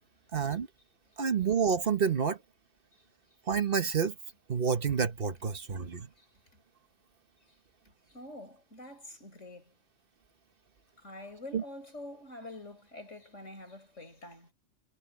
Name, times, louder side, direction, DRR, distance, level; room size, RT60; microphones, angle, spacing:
voice 1, 0.3-0.7 1.2-2.4 3.5-4.1 4.5-6.1 11.5-11.6, right 6 dB, 45° right, 1.3 m, -28 dB
voice 2, 8.1-9.7 11.0-14.5, left 1 dB, 65° left, 6.8 m, -46 dB
omnidirectional pair, 1.3 m